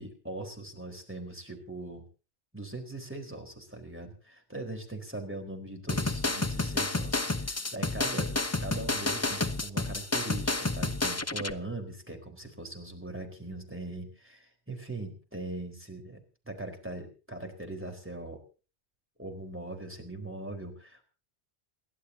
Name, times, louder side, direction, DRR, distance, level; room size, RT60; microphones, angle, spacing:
voice 1, 0.0-2.0 2.5-18.4 19.2-21.0, right 2 dB, 10° right, 4 dB, 4.2 m, -41 dB
sound 1, 5.9-11.5, left 2 dB, 15° left, 0.6 m, -30 dB
29.0 x 11.5 x 2.8 m, 0.34 s
omnidirectional pair, 1.2 m